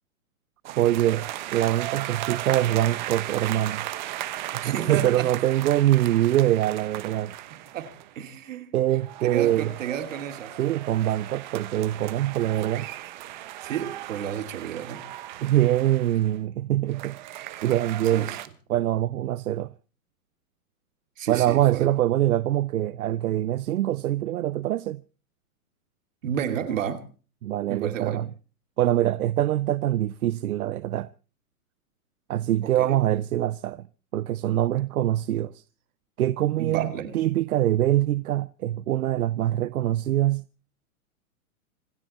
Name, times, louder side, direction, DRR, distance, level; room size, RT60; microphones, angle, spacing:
voice 1, 0.6-3.8 4.5-7.3 8.7-9.7 10.6-12.9 15.4-17.2 17.6-18.3 18.7-19.7 21.3-25.0 27.4-28.3 28.8-31.1 32.3-33.8 34.1-35.6 36.2-40.4, right 13 dB, 80° right, 0.7 m, -24 dB
sound 1, 0.7-8.2 8.9-16.4 16.9-18.5, right 14 dB, 30° right, 1.0 m, -36 dB
voice 2, 4.6-5.3 7.7-8.7 9.2-10.5 13.6-15.1 18.1-18.4 21.2-21.9 26.2-27.0 27.7-28.2 32.6-33.0 36.6-37.2, right 9 dB, 60° right, 2.7 m, -31 dB
26.5 x 11.5 x 4.2 m
hypercardioid pair, 165°, 43 cm